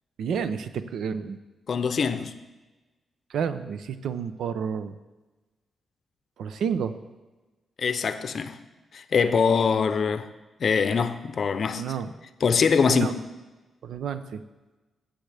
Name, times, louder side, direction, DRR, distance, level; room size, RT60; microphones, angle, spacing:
voice 1, 0.2-1.4 3.3-5.0 6.4-7.0 11.8-12.1 12.9-13.1 13.8-14.4, right 7 dB, 80° right, 0.6 m, -30 dB
voice 2, 1.7-2.3 7.8-8.6 8.9-10.3 10.6-11.8 12.4-13.1, left 6 dB, 50° left, 0.6 m, -23 dB
16.5 x 7.8 x 3.4 m
wide cardioid pair, 135°, 0 cm